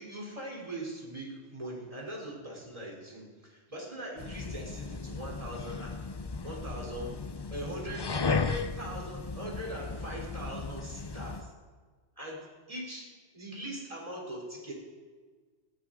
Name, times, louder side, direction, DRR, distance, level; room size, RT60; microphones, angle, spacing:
voice 1, 0.0-6.0 6.4-7.2 7.5-11.5 12.2-14.7, right 1 dB, 30° right, -2 dB, 3.6 m, -41 dB
sound 1, 4.2-11.5, left 4 dB, 35° left, 0.4 m, -36 dB
18.5 x 14.0 x 3.8 m, 1.4 s
omnidirectional pair, 1.2 m